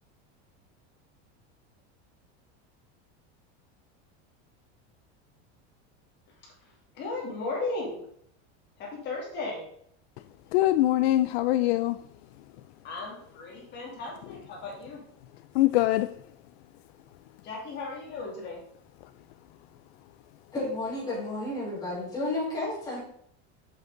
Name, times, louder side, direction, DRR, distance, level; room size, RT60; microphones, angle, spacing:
voice 1, 6.6-8.0 8.8-9.6 12.8-15.0 17.4-18.6, left 3 dB, 35° left, 2.7 m, -36 dB
voice 2, 10.5-12.0 15.5-16.1, left 15 dB, 70° left, 0.5 m, -23 dB
voice 3, 20.5-23.0, left 2 dB, 10° left, 4.1 m, -32 dB
7.9 x 7.6 x 3.8 m
cardioid pair, 175°, 32 cm